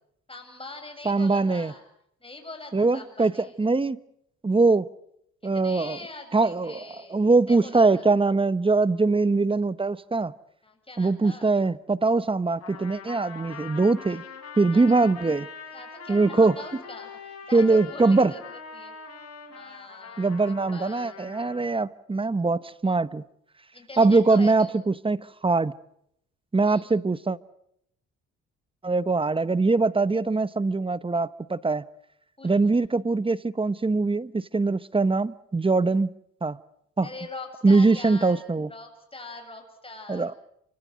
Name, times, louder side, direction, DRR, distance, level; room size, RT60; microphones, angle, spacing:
voice 1, 0.3-1.8 2.2-3.5 5.4-7.2 7.5-8.1 10.6-11.6 14.0-14.2 14.7-14.8 15.7-19.1 19.5-21.4 23.7-24.8 26.6-26.9 32.4-32.7 37.0-38.4 38.7-40.3, left 3 dB, 20° left, 8.0 m, -43 dB
voice 2, 1.0-1.7 2.7-4.0 4.4-4.9 5.4-6.0 6.3-10.3 11.0-14.2 14.6-15.5 16.1-16.5 17.5-18.3 20.2-23.2 24.0-25.8 26.5-27.4 28.8-31.8 32.4-36.1 36.4-36.6 37.0-37.1 37.6-38.7 40.1-40.3, right 3 dB, 15° right, 1.0 m, -22 dB
Trumpet, 12.6-21.6, left 5 dB, 55° left, 7.2 m, -43 dB
28.5 x 25.0 x 6.4 m
cardioid pair, 90°, 30 cm